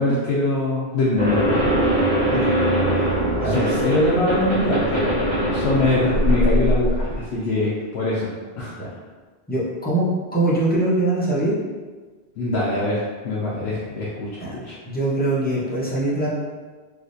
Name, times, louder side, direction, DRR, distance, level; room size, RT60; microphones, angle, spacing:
voice 1, 0.0-1.4 3.4-8.3 8.5-8.9 12.4-14.8, left 2 dB, 85° left, -7 dB, 0.9 m, -23 dB
sound 1, 1.2-7.2, right 1 dB, 60° right, 1.5 m, -21 dB
voice 2, 9.5-11.6 14.4-14.5 14.9-16.3, right 2 dB, 10° left, -8 dB, 0.6 m, -22 dB
3.2 x 2.7 x 2.6 m, 1.4 s
omnidirectional pair, 1.1 m